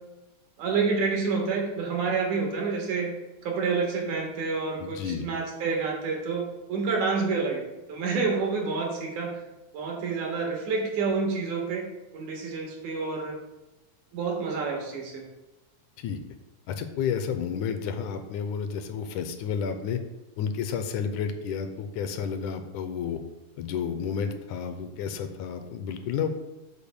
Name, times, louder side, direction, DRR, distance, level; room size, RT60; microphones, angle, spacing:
voice 1, 0.6-3.1 3.4-7.6 7.9-9.3 9.7-11.9 12.1-13.4 14.1-15.2, right 4 dB, 75° right, 0 dB, 2.9 m, -28 dB
voice 2, 4.8-5.3 16.0-16.2 16.7-20.0 20.4-23.2 23.6-26.3, left 7 dB, 80° left, 7 dB, 2.0 m, -31 dB
13.0 x 6.9 x 2.2 m, 1.0 s
omnidirectional pair, 3.6 m